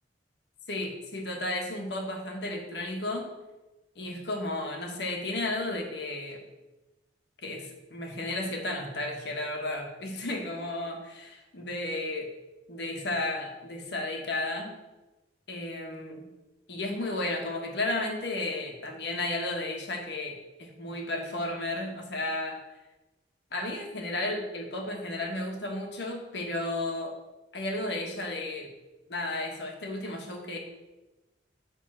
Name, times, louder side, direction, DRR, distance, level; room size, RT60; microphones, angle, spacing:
voice 1, 0.7-3.3 3.9-6.4 7.4-12.3 12.7-14.8 15.5-16.3 16.7-22.6 23.5-27.1 27.5-28.7 29.1-30.6, left 2 dB, 70° left, 2 dB, 1.3 m, -33 dB
7.3 x 3.6 x 6.2 m, 1.1 s
head